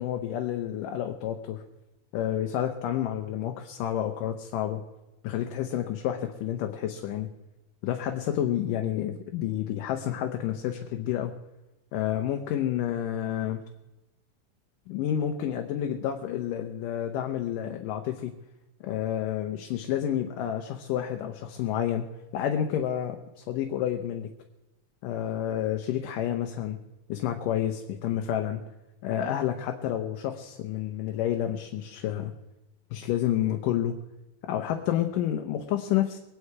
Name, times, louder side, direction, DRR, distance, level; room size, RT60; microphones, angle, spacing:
voice 1, 0.0-1.6 2.1-4.8 5.2-7.3 7.8-11.3 11.9-13.6 14.9-18.3 18.8-22.1 22.3-24.3 25.0-26.8 27.1-28.6 29.0-32.3 32.9-33.9 34.5-36.2, left 11 dB, 85° left, 4 dB, 2.6 m, -29 dB
23.0 x 9.7 x 4.7 m, 0.99 s
omnidirectional pair, 3.7 m